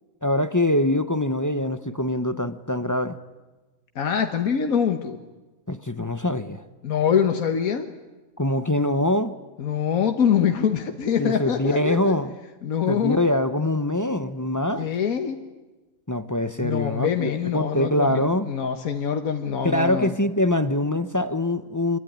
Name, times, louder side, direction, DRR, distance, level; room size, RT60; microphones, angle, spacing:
voice 1, 0.2-3.2 5.7-6.6 8.4-9.3 11.2-12.3 12.9-14.9 16.1-18.5 19.6-22.0, left 1 dB, 15° left, 0.7 m, -24 dB
voice 2, 3.9-5.2 6.8-7.9 9.6-12.1 12.6-13.2 14.8-15.4 16.6-20.1, left 8 dB, 85° left, 1.7 m, -24 dB
26.0 x 22.5 x 9.5 m
omnidirectional pair, 1.4 m